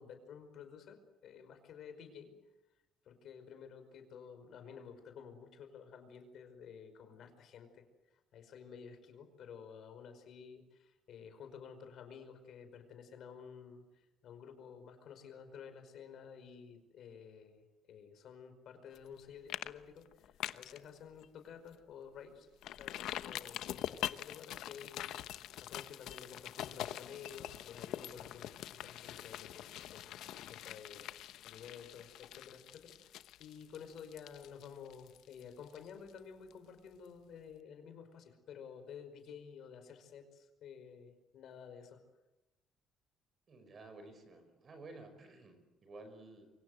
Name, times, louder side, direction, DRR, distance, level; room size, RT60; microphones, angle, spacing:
voice 1, 0.0-2.3 3.0-7.8 8.3-22.5 22.8-42.0, left 7 dB, 55° left, 7 dB, 5.1 m, -52 dB
sound 1, 18.9-19.2 19.5-19.7 20.0-20.8 21.2-21.3 21.7-21.8 22.6-36.2 36.5-36.6, left 12 dB, 75° left, 1.0 m, -44 dB
voice 2, 43.5-46.5, right 2 dB, 35° right, 8 dB, 5.3 m, -53 dB
27.5 x 24.5 x 8.0 m, 1.0 s
cardioid pair, 150°, 0 cm